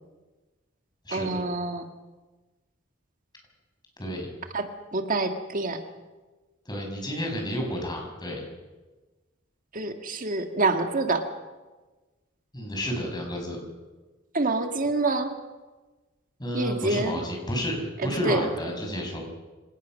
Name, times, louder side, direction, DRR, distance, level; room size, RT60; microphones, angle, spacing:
voice 1, 1.1-1.8 4.5-5.8 9.7-11.2 14.3-15.4 16.5-17.2 18.0-18.5, right 2 dB, 45° right, 6 dB, 1.8 m, -27 dB
voice 2, 4.0-4.3 6.6-8.4 12.5-13.6 16.4-19.2, equal, 20° left, 1 dB, 6.6 m, -31 dB
25.5 x 19.0 x 6.4 m, 1.2 s
head